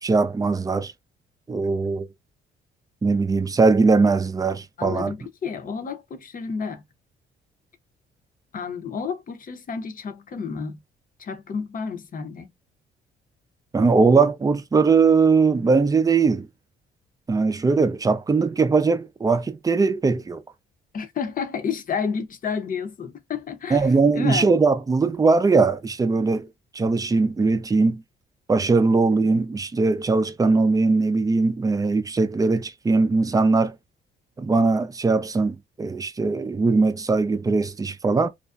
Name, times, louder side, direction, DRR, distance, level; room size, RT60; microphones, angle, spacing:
voice 1, 0.0-0.9 1.5-2.1 3.0-5.1 13.7-16.5 17.3-20.4 23.7-26.5 26.7-28.0 28.5-33.8 34.4-38.3, right 4 dB, 20° right, 0.4 m, -20 dB
voice 2, 4.8-6.8 8.5-10.8 11.2-12.5 20.9-23.9 24.1-24.5, left 6 dB, 45° left, 0.7 m, -30 dB
2.4 x 2.1 x 2.4 m
cardioid pair, 90°, 20 cm